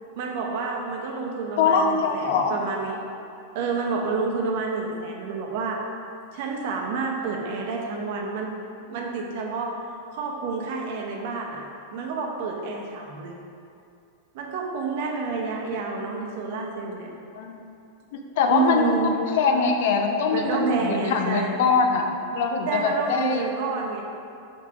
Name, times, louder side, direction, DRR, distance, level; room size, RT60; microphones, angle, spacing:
voice 1, 0.2-3.0 3.5-5.8 6.3-8.6 8.9-9.8 10.1-11.7 11.9-13.3 14.3-17.1 18.5-19.1 20.3-21.6 22.7-24.0, right 4 dB, 60° right, 0 dB, 0.6 m, -29 dB
voice 2, 1.6-2.6 17.3-17.5 18.1-18.9 19.3-23.5, left 4 dB, 65° left, 4 dB, 0.4 m, -23 dB
4.7 x 3.8 x 2.8 m, 2.6 s
hypercardioid pair, 95°, 0 cm